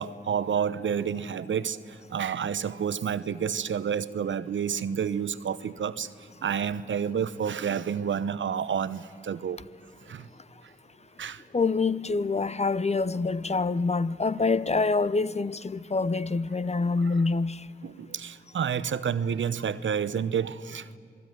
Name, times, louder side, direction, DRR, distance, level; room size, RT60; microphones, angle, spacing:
voice 1, 0.0-1.8 2.1-6.1 6.4-9.6 10.1-10.2 11.2-11.4 17.0-17.1 17.8-21.0, right 7 dB, 85° right, 0.9 m, -29 dB
voice 2, 11.5-17.6, left 4 dB, 35° left, 0.8 m, -26 dB
27.5 x 20.5 x 9.4 m
cardioid pair, 60°, 19 cm